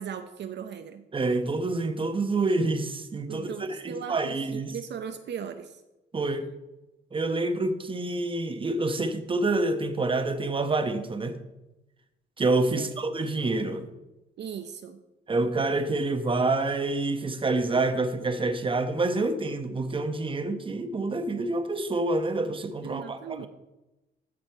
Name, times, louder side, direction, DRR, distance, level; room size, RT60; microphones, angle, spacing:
voice 1, 0.0-1.0 3.3-5.8 12.8-12.9 14.4-15.0 22.8-23.5, right 8 dB, 60° right, 7 dB, 0.7 m, -38 dB
voice 2, 1.1-4.7 6.1-6.5 7.1-11.4 12.4-13.9 15.3-23.5, right 2 dB, 25° right, 8 dB, 1.1 m, -27 dB
14.0 x 5.0 x 4.6 m, 1.0 s
cardioid pair, 90°, 20 cm